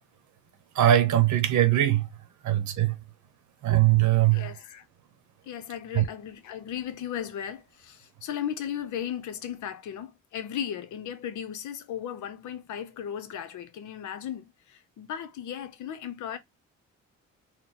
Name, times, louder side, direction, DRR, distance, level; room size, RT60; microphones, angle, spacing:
voice 1, 0.8-2.1 2.4-2.9 3.6-4.5 5.9-6.0, right 13 dB, 75° right, 1.0 m, -21 dB
voice 2, 4.3-4.8 5.5-16.4, left 9 dB, 75° left, 0.9 m, -36 dB
4.2 x 2.2 x 4.2 m
cardioid pair, 90°, 30 cm